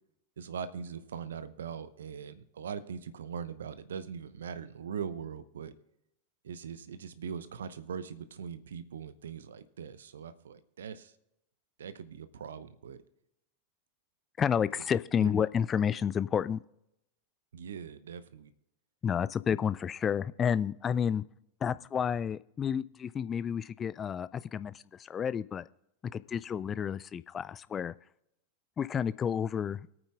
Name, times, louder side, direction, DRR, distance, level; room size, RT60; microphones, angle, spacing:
voice 1, 0.4-5.7 6.4-11.1 11.8-13.0 14.7-14.8 15.2-15.5 17.5-18.5, right 7 dB, 65° right, 13 dB, 0.8 m, -41 dB
voice 2, 14.4-16.6 19.0-21.2 21.6-25.6 26.1-27.9 28.8-29.9, left 8 dB, 25° left, 17 dB, 0.4 m, -30 dB
24.0 x 8.9 x 2.3 m, 0.83 s
figure-of-eight pair, 90°, 0 cm